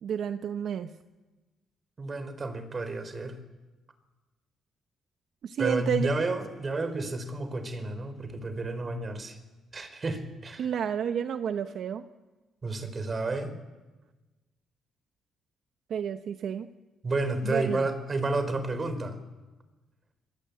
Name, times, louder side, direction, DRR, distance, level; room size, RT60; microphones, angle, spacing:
voice 1, 0.0-0.9 5.4-6.1 10.6-12.1 15.9-16.7 17.4-17.8, right 8 dB, 65° right, 8 dB, 1.0 m, -30 dB
voice 2, 2.0-3.4 5.6-9.4 9.7-10.7 12.6-13.6 17.0-19.2, right 2 dB, 35° right, 11 dB, 4.4 m, -31 dB
27.5 x 20.5 x 8.5 m, 1.2 s
cardioid pair, 90°, 0 cm